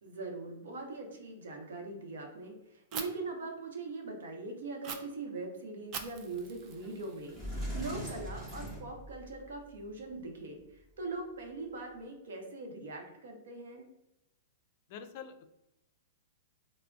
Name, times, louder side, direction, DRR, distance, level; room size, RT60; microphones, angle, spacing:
voice 1, 0.0-13.9, right 3 dB, 80° right, 2 dB, 0.8 m, -42 dB
Fire, 2.9-3.0 4.8-5.0 5.9-7.9, right 7 dB, 35° right, 0.4 m, -43 dB
Sliding door, 6.8-6.9 7.3-9.6, equal, 15° right, 1.0 m, -40 dB
voice 2, 14.9-15.5, left 7 dB, 50° left, 8 dB, 0.4 m, -45 dB
2.3 x 2.0 x 3.5 m, 0.89 s
hypercardioid pair, 145°, 0 cm